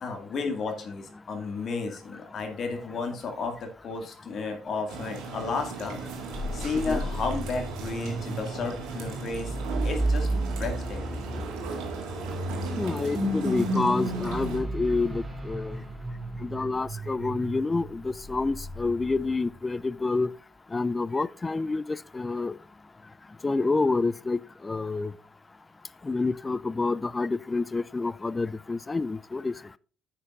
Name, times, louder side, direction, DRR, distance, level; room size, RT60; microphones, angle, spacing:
voice 1, 0.0-6.0 6.5-11.2, left 4 dB, 45° left, 2.0 m, -33 dB
sound 1, 4.9-14.6, right 4 dB, 60° right, 1.9 m, -37 dB
sound 2, 6.3-19.6, right 1 dB, 20° right, 2.0 m, -33 dB
voice 2, 6.6-7.0 12.7-15.8 16.4-20.3 20.7-22.6 23.4-25.1 26.0-29.7, left 3 dB, 25° left, 0.4 m, -28 dB
9.7 x 7.3 x 2.4 m
figure-of-eight pair, 50°, 0 cm